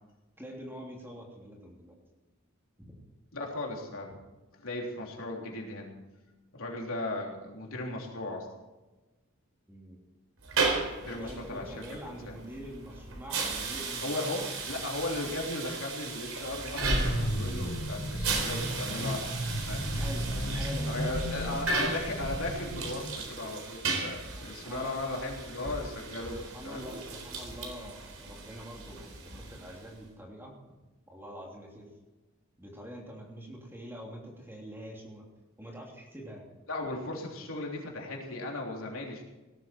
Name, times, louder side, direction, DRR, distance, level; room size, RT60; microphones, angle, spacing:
voice 1, 0.4-1.9 2.8-2.9 9.7-10.0 11.2-14.5 19.9-21.8 24.3-25.0 26.3-30.6 31.1-31.9 32.6-35.2 35.6-36.5, equal, 10° right, -1 dB, 3.1 m, -45 dB
voice 2, 3.3-4.1 4.6-5.9 6.5-8.5 10.8-11.7 12.1-12.4 14.0-19.3 19.5-20.1 20.9-26.9 36.7-39.2, left 2 dB, 75° left, 0 dB, 3.5 m, -37 dB
sound 1, 10.4-30.0, right 4 dB, 80° right, 4.1 m, -36 dB
sound 2, 16.8-23.2, equal, 55° left, 2.5 m, -33 dB
18.5 x 12.5 x 4.6 m, 1.1 s
head